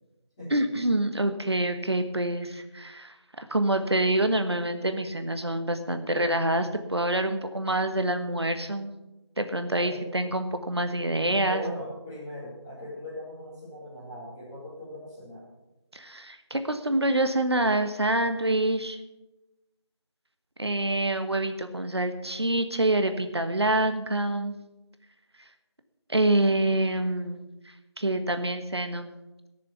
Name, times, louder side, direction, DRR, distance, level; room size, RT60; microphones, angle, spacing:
voice 1, 0.5-8.9 9.4-11.6 15.9-19.0 20.6-24.5 26.1-27.4 28.0-29.1, right 1 dB, 60° right, 8 dB, 1.3 m, -26 dB
voice 2, 9.7-10.1 11.4-15.4, equal, 10° left, -14 dB, 3.8 m, -39 dB
16.5 x 6.9 x 7.0 m, 1.0 s
figure-of-eight pair, 170°, 15 cm